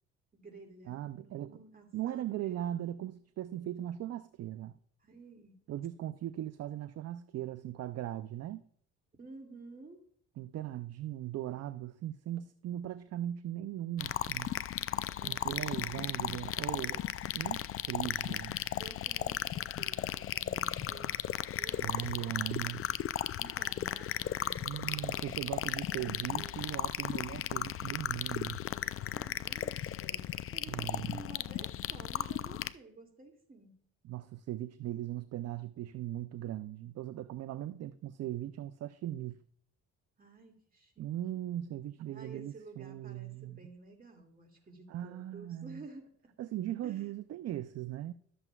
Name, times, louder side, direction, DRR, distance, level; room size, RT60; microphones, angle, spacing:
voice 1, 0.3-2.6 5.0-5.6 9.2-10.0 15.2-16.4 16.7-17.0 18.7-21.3 21.6-22.0 23.4-26.6 29.1-30.2 30.5-33.9 40.2-41.1 41.3-41.4 42.1-46.3 46.8-47.1, right 3 dB, 30° right, 2.2 m, -53 dB
voice 2, 0.9-1.6 1.9-4.8 5.7-8.6 10.4-14.5 15.2-17.0 17.3-18.6 21.8-22.9 24.6-28.6 30.7-31.2 34.0-39.4 41.0-43.6 44.9-45.8 46.4-48.1, right 12 dB, 55° right, 0.5 m, -39 dB
sound 1, 14.0-32.7, left 11 dB, 45° left, 0.4 m, -35 dB
12.0 x 7.8 x 2.3 m
cardioid pair, 90°, 30 cm